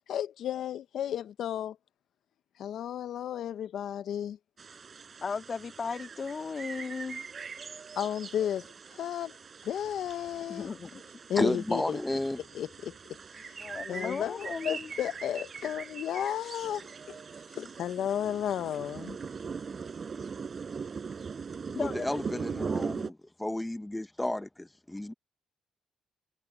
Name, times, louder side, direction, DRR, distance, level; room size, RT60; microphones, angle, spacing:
voice 1, 0.1-1.8 2.6-4.4 8.0-9.3 9.6-10.7 11.3-12.0 12.5-12.9 13.3-13.6 13.9-17.2 17.5-19.2, left 10 dB, 70° left, 0.5 m, -33 dB
sound 1, 4.6-23.1, right 5 dB, 40° right, 6.3 m, -41 dB
voice 2, 5.2-7.2 10.5-11.0 13.6-14.9 21.7-22.2, left 5 dB, 40° left, 1.8 m, -36 dB
voice 3, 11.4-12.4 21.8-25.1, left 1 dB, 10° left, 0.6 m, -32 dB
cardioid pair, 90°, 0 cm